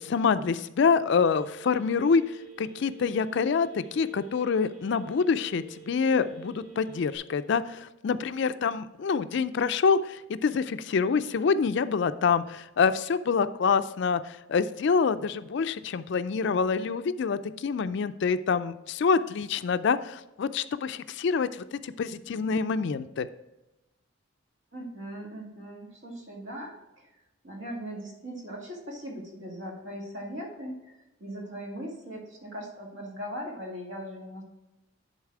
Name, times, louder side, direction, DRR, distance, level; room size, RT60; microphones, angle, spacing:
voice 1, 0.0-23.3, left 5 dB, 60° left, 13 dB, 0.4 m, -26 dB
Telephone, 1.2-7.2, right 6 dB, 90° right, 3.0 m, -49 dB
voice 2, 24.7-27.1 27.4-34.4, equal, 70° right, -1 dB, 2.2 m, -39 dB
10.5 x 4.1 x 4.8 m, 1.0 s
head